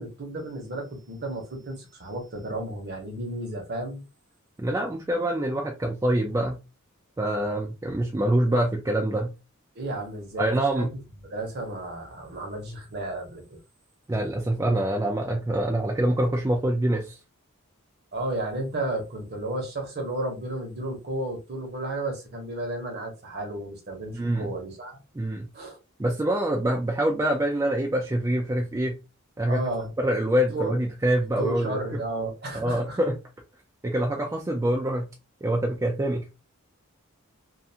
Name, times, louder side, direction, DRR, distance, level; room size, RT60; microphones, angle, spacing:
voice 1, 0.0-4.0 9.7-10.9 11.3-13.6 18.1-25.0 25.5-25.8 29.5-29.9 30.5-30.7 31.4-33.0, right 1 dB, 50° right, 0.9 m, -33 dB
voice 2, 4.6-6.6 7.2-9.3 10.4-10.9 14.1-17.2 24.1-24.5 25.2-25.5 26.0-29.0 29.4-29.6 30.0-32.0 32.5-33.2 33.8-35.1 35.4-36.4, right 1 dB, 15° right, 0.3 m, -25 dB
2.5 x 2.3 x 2.7 m
head